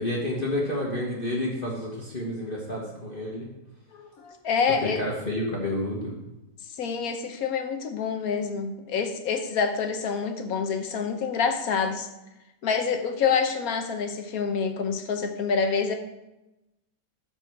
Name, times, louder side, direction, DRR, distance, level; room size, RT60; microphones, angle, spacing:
voice 1, 0.0-3.4 4.8-6.1, left 1 dB, 30° left, -4 dB, 1.5 m, -29 dB
voice 2, 3.9-5.0 6.8-12.1 12.6-15.9, left 6 dB, 60° left, 6 dB, 1.2 m, -27 dB
12.5 x 4.4 x 4.6 m, 0.96 s
omnidirectional pair, 1.9 m